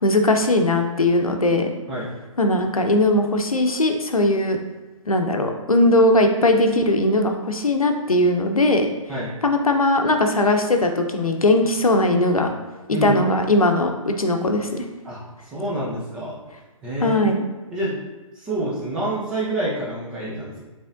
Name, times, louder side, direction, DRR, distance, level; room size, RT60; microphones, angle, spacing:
voice 1, 0.0-1.7 2.4-4.6 5.1-8.9 9.4-12.5 13.0-14.9 17.0-17.4, left 1 dB, 85° left, 5 dB, 0.7 m, -19 dB
voice 2, 12.9-13.2 15.0-15.2 15.5-16.4 16.8-17.2 17.7-18.0 18.4-20.6, right 1 dB, 5° right, -7 dB, 0.3 m, -27 dB
5.0 x 3.4 x 2.5 m, 1.2 s
figure-of-eight pair, 140°, 18 cm